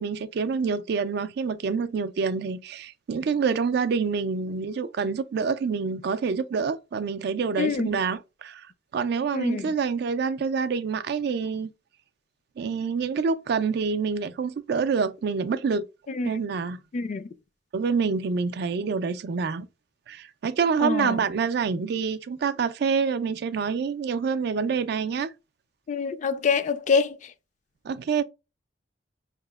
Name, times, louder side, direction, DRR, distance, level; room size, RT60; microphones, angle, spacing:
voice 1, 0.0-8.7 8.9-11.7 12.6-15.9 16.2-16.8 17.7-19.7 20.1-25.3 27.8-28.2, right 5 dB, 60° right, 0.3 m, -27 dB
voice 2, 7.6-7.9 9.3-9.7 16.1-16.4 16.9-17.3 20.8-21.2 25.9-27.2, left 5 dB, 40° left, 0.3 m, -25 dB
4.7 x 2.9 x 2.3 m
head